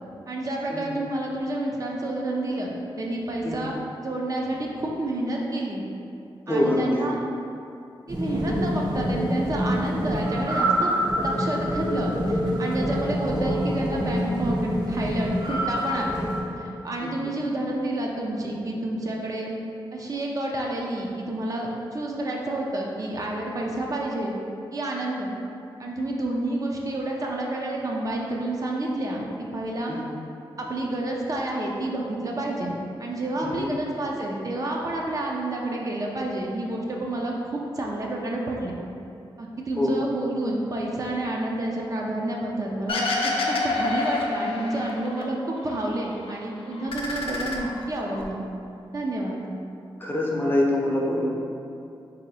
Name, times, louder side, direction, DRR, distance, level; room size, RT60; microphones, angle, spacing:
voice 1, 0.3-3.7 4.0-5.8 6.5-7.2 8.1-16.2 16.6-19.6 19.9-24.4 24.7-25.3 25.8-29.9 30.6-38.7 39.4-48.4 48.9-49.5, right 1 dB, 40° right, -2 dB, 0.4 m, -29 dB
voice 2, 6.5-7.0 17.0-17.3 29.9-30.1 33.4-33.7 39.8-40.0 50.0-51.3, left 1 dB, 25° left, -3 dB, 0.6 m, -25 dB
sound 1, 8.1-16.4, equal, 60° right, 1.1 m, -26 dB
sound 2, 42.9-45.2 45.6-46.4 46.7-48.2, left 3 dB, 85° left, 0.4 m, -28 dB
3.0 x 2.7 x 4.0 m, 2.6 s
wide cardioid pair, 105°, 9 cm